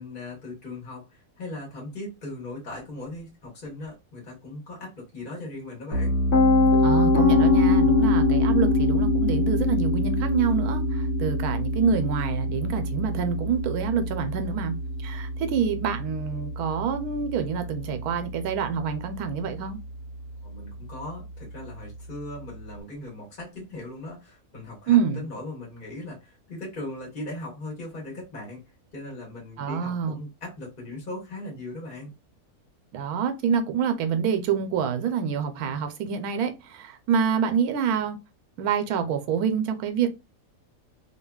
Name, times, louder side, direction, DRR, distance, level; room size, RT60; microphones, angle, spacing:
voice 1, 0.0-6.1 20.4-28.6 28.9-32.1, left 2 dB, 35° left, 1.3 m, -39 dB
Piano, 5.9-17.8, left 2 dB, 70° left, 1.3 m, -23 dB
voice 2, 6.8-14.7 15.0-19.8 24.9-25.2 29.6-30.2 32.9-38.2 38.6-40.1, right 7 dB, 85° right, 1.1 m, -26 dB
2.7 x 2.6 x 2.2 m
omnidirectional pair, 1.6 m